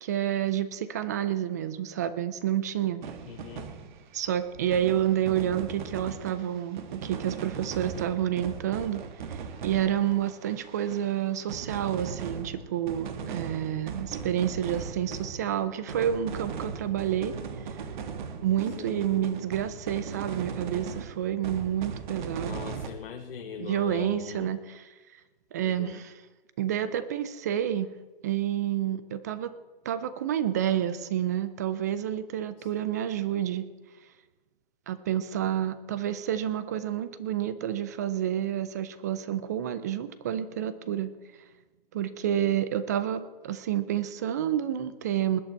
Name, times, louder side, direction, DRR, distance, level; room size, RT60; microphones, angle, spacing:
voice 1, 0.0-3.0 4.1-9.0 9.3-17.3 17.6-17.8 18.4-22.6 23.6-24.9 25.5-26.2 26.6-27.9 28.2-29.5 29.9-33.7 34.9-41.1 41.9-45.4, right 10 dB, 20° right, 14 dB, 0.3 m, -29 dB
sound 1, 3.0-11.2 11.5-22.9, right 6 dB, 55° right, 1.5 m, -39 dB
voice 2, 3.3-3.7 18.8-19.0 22.4-24.5 25.6-26.0, left 9 dB, 70° left, 5 dB, 1.2 m, -40 dB
20.0 x 8.9 x 4.5 m, 1.2 s
hypercardioid pair, 145°, 29 cm